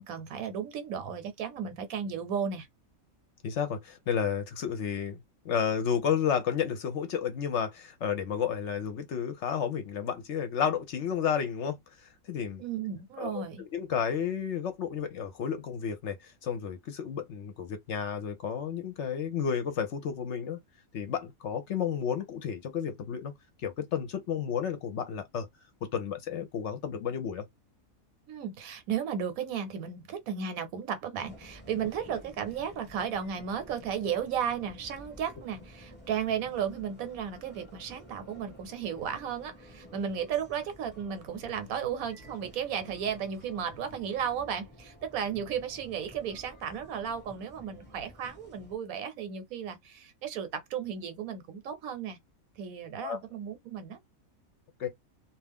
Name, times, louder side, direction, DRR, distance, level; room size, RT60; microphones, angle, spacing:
voice 1, 0.0-2.7 12.6-13.6 28.3-52.2 52.6-54.0, right 8 dB, 80° right, 1.1 m, -34 dB
voice 2, 3.4-5.2 5.4-12.6 13.2-13.4 13.7-20.6 20.9-23.3 23.6-25.5 25.8-27.4 53.0-53.2 54.8-54.9, left 7 dB, 65° left, 0.8 m, -32 dB
sound 1, 31.2-48.8, equal, 10° left, 0.8 m, -52 dB
2.4 x 2.4 x 3.4 m
omnidirectional pair, 1.5 m